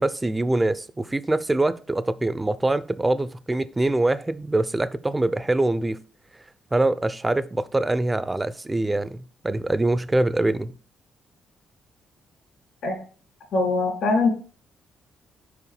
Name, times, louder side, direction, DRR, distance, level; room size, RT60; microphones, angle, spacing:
voice 1, 0.0-6.0 6.7-10.7, right 2 dB, 15° right, 0.5 m, -24 dB
voice 2, 13.5-14.3, left 3 dB, 75° left, 2.5 m, -22 dB
5.1 x 5.0 x 4.8 m
cardioid pair, 90°, 0 cm